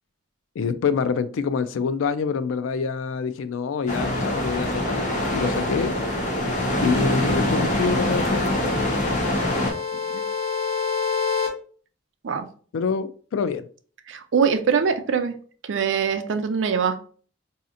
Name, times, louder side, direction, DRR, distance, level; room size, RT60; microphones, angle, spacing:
voice 1, 0.6-5.9 6.8-8.6 12.7-13.7, left 5 dB, 90° left, 13 dB, 0.4 m, -26 dB
sound 1, 3.9-9.7, left 1 dB, 40° left, 0.9 m, -24 dB
sound 2, 6.6-11.5, left 6 dB, 10° left, 1.3 m, -30 dB
voice 2, 14.1-15.4 15.6-17.0, right 6 dB, 75° right, 7 dB, 0.5 m, -23 dB
4.1 x 2.8 x 2.4 m, 0.44 s
head